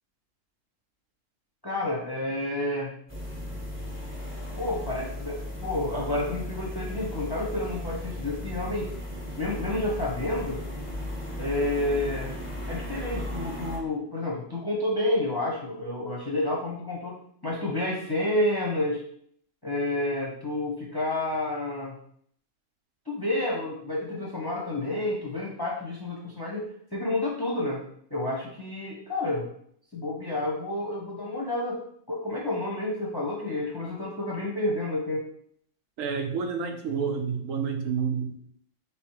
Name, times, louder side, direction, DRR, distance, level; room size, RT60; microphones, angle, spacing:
voice 1, 1.6-2.9 4.5-8.9 9.4-10.6 11.4-12.3 12.7-17.2 17.4-19.0 19.6-21.9 23.1-27.8 28.1-29.5 29.9-31.8 32.1-35.2, left 1 dB, 20° left, -3 dB, 0.7 m, -30 dB
sound 1, 3.1-13.8, left 1 dB, 10° right, 1.0 m, -36 dB
voice 2, 36.0-38.3, right 6 dB, 85° right, 4 dB, 1.1 m, -29 dB
3.4 x 3.0 x 4.6 m, 0.65 s
omnidirectional pair, 1.3 m